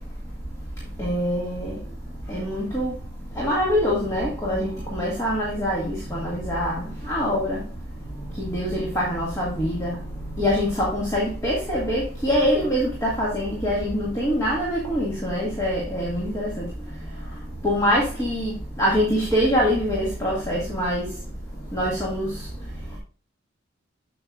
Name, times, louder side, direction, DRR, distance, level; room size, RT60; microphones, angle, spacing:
voice 1, 0.0-23.0, equal, 15° left, 1.9 m, -25 dB
7.8 x 7.7 x 2.4 m
head